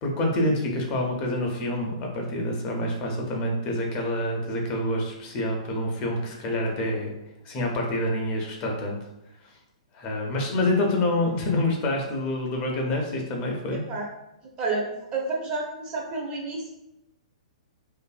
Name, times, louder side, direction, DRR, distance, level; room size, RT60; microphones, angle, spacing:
voice 1, 0.0-7.1 7.4-9.0 9.9-13.8, left 1 dB, 35° left, 0 dB, 0.6 m, -27 dB
voice 2, 14.6-16.7, right 3 dB, 30° right, -1 dB, 0.6 m, -30 dB
2.6 x 2.5 x 2.3 m, 0.88 s
hypercardioid pair, 130°, 4 cm